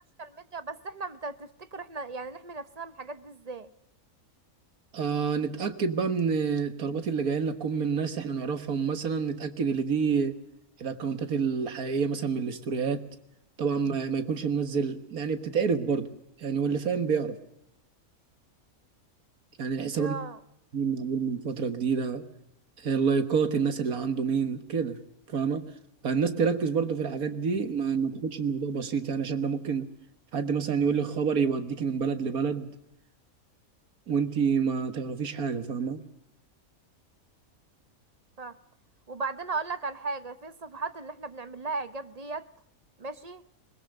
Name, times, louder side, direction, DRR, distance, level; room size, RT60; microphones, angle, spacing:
voice 1, 0.2-3.7 20.0-20.4 38.4-38.5 39.1-42.4 43.0-43.4, right 3 dB, 35° right, 0.7 m, -36 dB
voice 2, 4.9-10.3 10.8-13.0 13.6-16.1 16.4-17.3 19.6-20.2 20.7-22.2 22.8-25.0 25.3-25.7 26.0-29.9 30.3-32.7 34.1-36.0, right 6 dB, 80° right, 1.9 m, -28 dB
21.0 x 20.5 x 6.5 m
omnidirectional pair, 1.5 m